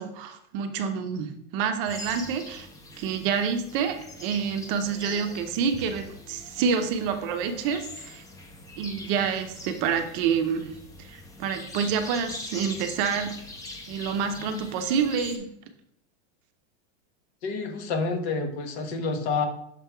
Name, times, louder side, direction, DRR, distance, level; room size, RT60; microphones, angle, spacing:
voice 1, 0.0-2.7 3.0-8.2 8.8-13.4 13.9-15.5, right 6 dB, 45° right, 7 dB, 0.6 m, -28 dB
sound 1, 1.8-15.4, left 2 dB, 10° left, 0.5 m, -42 dB
voice 2, 17.4-19.4, left 4 dB, 55° left, 5 dB, 1.2 m, -28 dB
6.6 x 3.4 x 4.5 m, 0.72 s
supercardioid pair, 150°, 39 cm